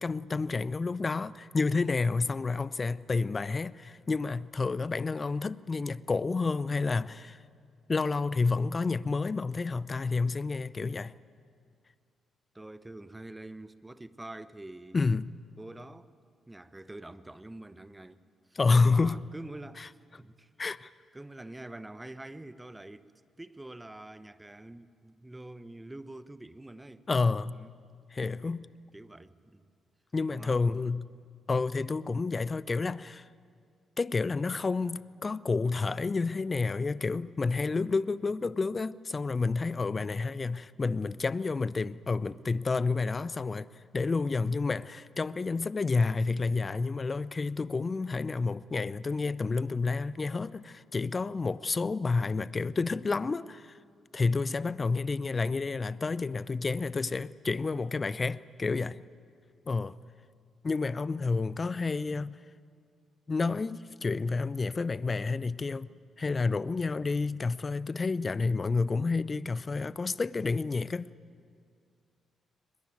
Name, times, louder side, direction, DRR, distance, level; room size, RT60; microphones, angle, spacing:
voice 1, 0.0-7.4 7.9-11.1 14.9-15.3 18.5-19.2 19.8-19.9 20.6-20.9 27.1-27.6 28.1-28.7 30.1-31.1 31.5-33.3 34.0-43.7 43.9-53.7 54.1-59.0 59.7-60.0 60.6-62.4 63.3-65.9 66.2-71.1, left 4 dB, 35° left, 0.7 m, -30 dB
voice 2, 12.5-15.0 15.6-16.1 16.5-19.9 20.2-20.5 21.1-23.1 23.4-27.1 27.5-27.7 28.2-28.6 28.9-29.7 30.3-30.6, right 1 dB, 15° right, 1.1 m, -46 dB
22.0 x 21.0 x 9.3 m
hypercardioid pair, 40°, 0 cm